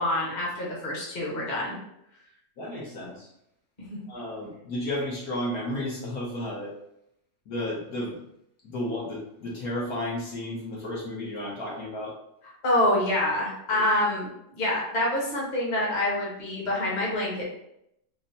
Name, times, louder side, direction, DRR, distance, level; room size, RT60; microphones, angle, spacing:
voice 1, 0.0-1.8 3.9-4.0 12.6-17.4, left 1 dB, 30° left, -4 dB, 1.2 m, -26 dB
voice 2, 2.6-3.3 4.1-6.7 7.5-8.2 8.6-12.1 13.7-13.8, left 1 dB, 65° left, -4 dB, 1.5 m, -33 dB
4.3 x 2.2 x 4.0 m, 0.78 s
omnidirectional pair, 1.8 m